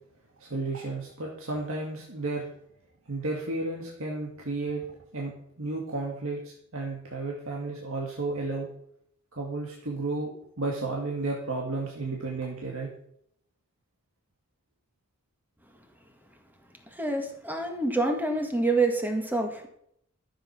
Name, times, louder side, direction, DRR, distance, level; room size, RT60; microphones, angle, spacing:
voice 1, 0.4-2.5 3.1-4.8 5.1-8.7 9.3-12.9, right 3 dB, 65° right, -2 dB, 2.2 m, -33 dB
voice 2, 16.9-19.7, right 2 dB, 10° right, 3 dB, 1.8 m, -27 dB
13.5 x 7.7 x 6.0 m, 0.71 s
head